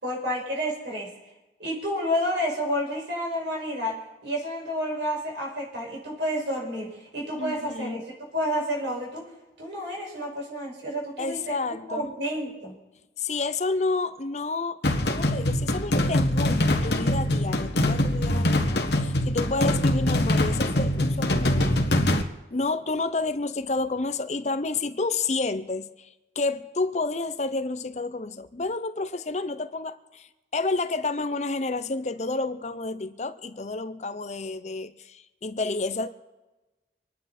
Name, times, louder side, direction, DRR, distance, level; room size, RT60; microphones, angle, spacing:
voice 1, 0.0-1.1 1.6-8.0 8.3-9.2 9.6-11.6 11.9-12.7, equal, 85° right, 6.1 m, -30 dB
voice 2, 7.4-8.0 11.2-12.1 13.2-14.8 15.0-21.9 22.5-36.1, left 3 dB, 40° left, 0.7 m, -30 dB
sound 1, 14.8-22.2, left 1 dB, 75° left, 1.7 m, -23 dB
26.0 x 10.5 x 4.4 m
head